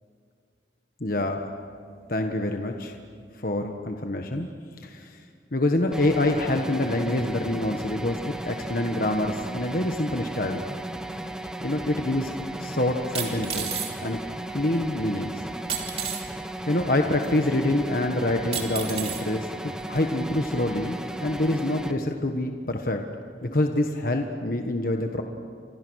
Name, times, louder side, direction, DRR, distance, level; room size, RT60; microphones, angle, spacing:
voice 1, 1.0-1.4 2.1-2.9 3.3-4.5 4.8-5.2 5.5-10.6 11.6-12.3 12.6-14.2 14.5-15.3 16.7-19.5 19.9-23.0 23.4-25.2, left 1 dB, 50° left, 4 dB, 1.4 m, -26 dB
sound 1, 5.9-21.9, right 1 dB, 5° right, 1.2 m, -35 dB
sound 2, 11.9-12.0 13.1-13.9 15.7-16.2 17.2-17.3 18.5-19.2 20.0-20.1, right 7 dB, 35° right, 3.2 m, -31 dB
29.5 x 26.5 x 6.4 m, 2.2 s
head